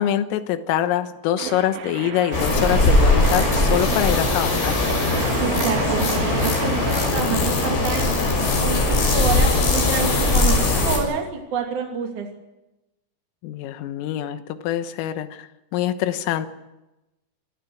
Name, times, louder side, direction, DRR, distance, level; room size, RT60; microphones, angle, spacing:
voice 1, 0.0-4.7 13.4-16.5, left 11 dB, 85° left, 10 dB, 3.8 m, -24 dB
sound 1, 1.4-7.1, right 8 dB, 70° right, 4.0 m, -31 dB
sound 2, 2.3-11.0, left 2 dB, 65° left, 8.9 m, -20 dB
voice 2, 5.4-12.3, right 5 dB, 45° right, 2 dB, 3.3 m, -28 dB
27.0 x 20.0 x 6.3 m, 0.98 s
omnidirectional pair, 6.0 m